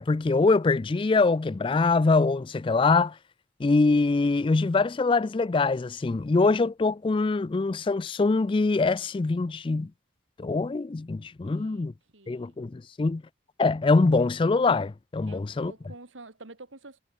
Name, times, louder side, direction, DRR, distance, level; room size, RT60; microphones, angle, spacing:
voice 1, 0.0-3.2 3.6-9.9 10.4-11.9 12.3-13.2 13.6-15.7, left 3 dB, 25° left, 0.3 m, -23 dB
voice 2, 11.4-11.9 12.1-12.6 15.3-17.0, right 2 dB, 90° right, 2.5 m, -48 dB
head